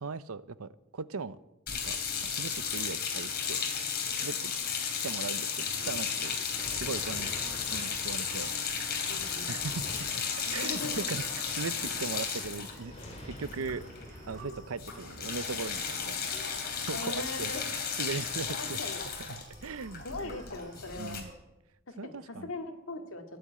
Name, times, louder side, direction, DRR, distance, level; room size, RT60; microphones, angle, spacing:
voice 1, 0.0-1.4 1.7-2.0 2.2-3.6 4.1-4.5 5.0-6.3 6.7-7.3 7.7-8.5 9.5-10.2 10.5-12.9 13.2-13.8 14.3-16.3 16.9-17.5 18.0-18.8 19.2-20.4 21.0-21.3 22.0-22.5, right 4 dB, 80° right, 16 dB, 0.7 m, -39 dB
sound 1, 1.7-14.0 14.3-14.5 14.8-21.2, left 6 dB, 45° left, 3.1 m, -34 dB
Thunder, 5.6-16.5, equal, 30° left, 3.2 m, -49 dB
voice 2, 9.1-9.5 10.4-11.1 16.9-17.7 18.4-19.0 20.0-21.2 21.9-23.2, left 2 dB, 65° left, 5 dB, 2.0 m, -40 dB
Screaming, 10.5-21.3, right 1 dB, 40° right, 4.3 m, -51 dB
15.0 x 10.5 x 8.8 m, 0.93 s
head